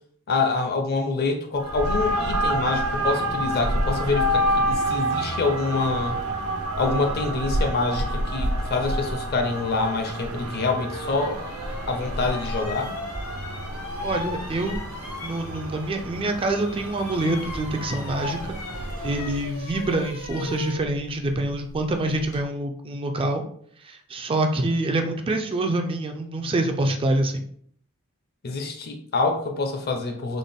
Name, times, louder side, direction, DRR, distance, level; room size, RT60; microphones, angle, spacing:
voice 1, 0.3-6.2 6.8-11.4 11.9-12.9 28.4-30.4, left 3 dB, 45° left, 5 dB, 0.5 m, -26 dB
sound 1, 1.6-19.5, right 1 dB, 90° right, 0.6 m, -28 dB
sound 2, 10.2-10.3 10.8-16.0 16.3-22.4, left 2 dB, 70° left, 1.1 m, -37 dB
voice 2, 14.0-14.8 15.2-18.6 19.0-23.4 23.8-27.4, right 2 dB, 25° right, 5 dB, 0.3 m, -26 dB
3.7 x 2.1 x 3.4 m, 0.62 s
head